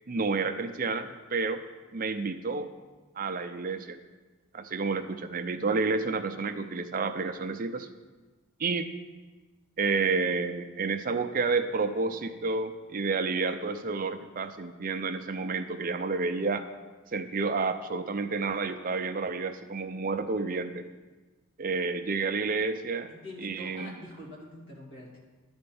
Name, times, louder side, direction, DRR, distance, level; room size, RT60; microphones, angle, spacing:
voice 1, 0.1-1.6 1.9-2.7 3.2-4.0 4.5-7.9 8.6-8.9 9.8-16.7 17.1-20.8 21.6-23.1 23.4-24.0, right 4 dB, 40° right, 8 dB, 0.5 m, -30 dB
voice 2, 23.1-25.2, left 1 dB, 55° left, -4 dB, 2.4 m, -45 dB
10.5 x 4.4 x 6.9 m, 1.3 s
head